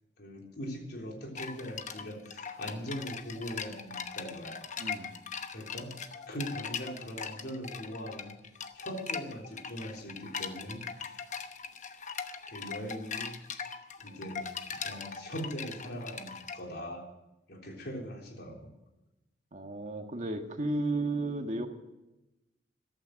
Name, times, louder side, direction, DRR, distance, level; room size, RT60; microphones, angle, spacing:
voice 1, 0.2-4.6 5.5-6.0 6.3-8.3 8.7-11.3 12.5-13.3 14.0-14.4 14.8-17.0 17.5-18.7, equal, 65° left, 1 dB, 3.7 m, -40 dB
sound 1, 1.4-16.6, left 6 dB, 45° left, 1.0 m, -40 dB
voice 2, 4.8-5.1 19.5-21.7, right 2 dB, 45° right, 4 dB, 1.8 m, -33 dB
14.5 x 13.0 x 6.5 m, 0.98 s
head